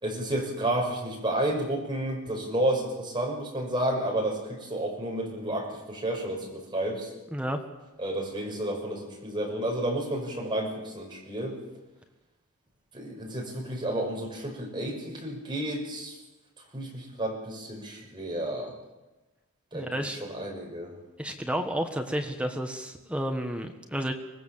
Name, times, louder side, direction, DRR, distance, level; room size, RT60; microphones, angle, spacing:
voice 1, 0.0-7.1 8.0-11.6 12.9-16.2 16.7-18.7 19.7-20.9, right 1 dB, 20° right, -1 dB, 6.0 m, -31 dB
voice 2, 19.7-20.2 21.2-24.1, equal, 5° right, 4 dB, 1.4 m, -31 dB
25.0 x 20.0 x 7.5 m, 1.1 s
head